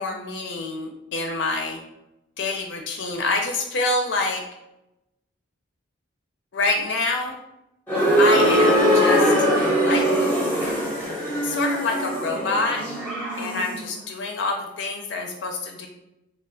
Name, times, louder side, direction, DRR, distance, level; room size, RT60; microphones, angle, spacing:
voice 1, 0.0-1.8 2.4-4.4 6.5-7.4 8.2-9.3 9.8-10.1 11.4-12.8 13.4-15.9, left 3 dB, 60° left, 3 dB, 0.4 m, -26 dB
sound 1, 7.9-13.8, equal, 10° left, 0.7 m, -21 dB
3.2 x 2.3 x 3.6 m, 0.90 s
head